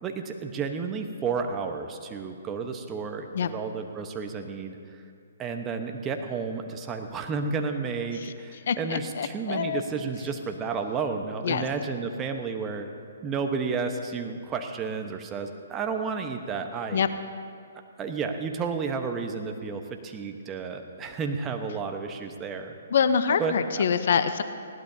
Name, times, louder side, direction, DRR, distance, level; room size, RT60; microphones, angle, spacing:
voice 1, 0.0-5.0 5.4-12.9 13.2-17.0 18.0-22.8 23.4-23.8, right 5 dB, 20° right, 5 dB, 1.1 m, -32 dB
voice 2, 8.7-9.8 11.4-11.6 16.9-17.1 22.9-24.4, left 7 dB, 60° left, 11 dB, 0.8 m, -25 dB
20.0 x 17.0 x 2.8 m, 2.4 s
figure-of-eight pair, 135°, 0 cm